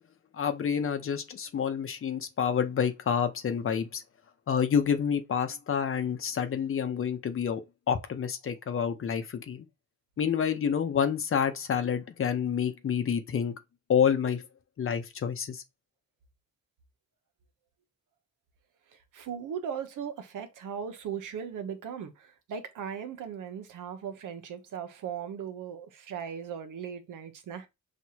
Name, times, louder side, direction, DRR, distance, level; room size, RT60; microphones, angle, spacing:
voice 1, 0.3-4.0 4.5-7.6 7.9-9.6 10.2-13.5 13.9-14.4 14.8-15.6, left 7 dB, 45° left, 0.8 m, -28 dB
voice 2, 19.1-27.7, right 7 dB, 75° right, 0.9 m, -38 dB
6.2 x 2.5 x 2.9 m
wide cardioid pair, 145°, 31 cm